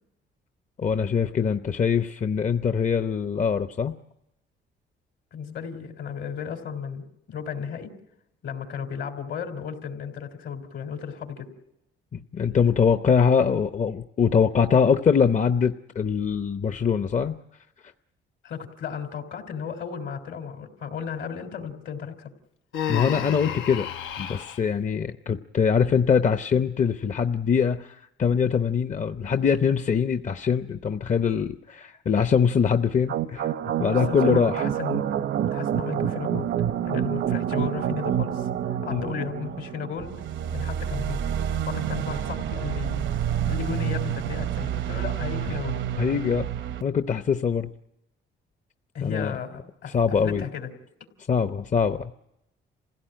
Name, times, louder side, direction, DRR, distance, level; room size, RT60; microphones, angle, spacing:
voice 1, 0.8-3.9 12.1-17.4 22.9-23.9 24.2-34.6 38.9-39.1 46.0-46.5 46.8-47.7 49.0-49.4 49.9-50.4 51.3-52.1, left 6 dB, 40° left, 9 dB, 0.8 m, -23 dB
voice 2, 5.3-7.9 8.4-11.5 18.4-22.3 33.8-35.3 35.5-36.5 36.8-38.5 38.8-40.1 40.5-41.2 41.6-43.0 43.5-45.8 48.9-50.0 50.2-50.7, left 7 dB, 70° left, 6 dB, 3.5 m, -34 dB
Human voice, 22.7-24.6, left 9 dB, 90° left, 0.9 m, -31 dB
sound 1, 33.1-46.8, right 10 dB, 70° right, 0.8 m, -28 dB
27.0 x 16.5 x 8.9 m, 0.88 s
cardioid pair, 90°, 20 cm